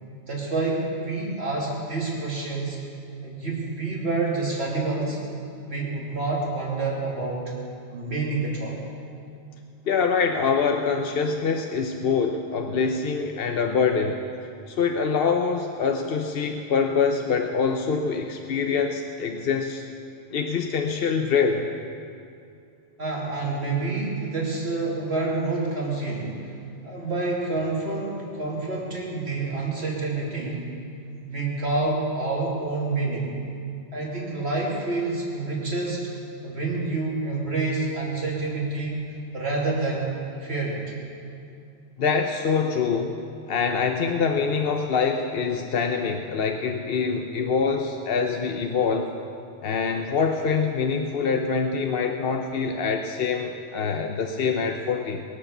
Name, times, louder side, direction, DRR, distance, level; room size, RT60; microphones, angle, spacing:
voice 1, 0.3-2.8 3.2-5.2 5.7-7.5 7.9-8.8 23.0-26.5 26.8-30.7 31.2-33.3 33.9-36.0 36.4-39.0 39.3-40.1 40.4-40.9, right 3 dB, 65° right, -4 dB, 3.3 m, -28 dB
voice 2, 9.9-14.2 14.7-19.8 20.3-21.7 42.0-43.2 43.5-49.1 49.6-55.2, left 5 dB, 60° left, 4 dB, 0.9 m, -25 dB
21.5 x 8.6 x 6.7 m, 2.5 s
omnidirectional pair, 1.2 m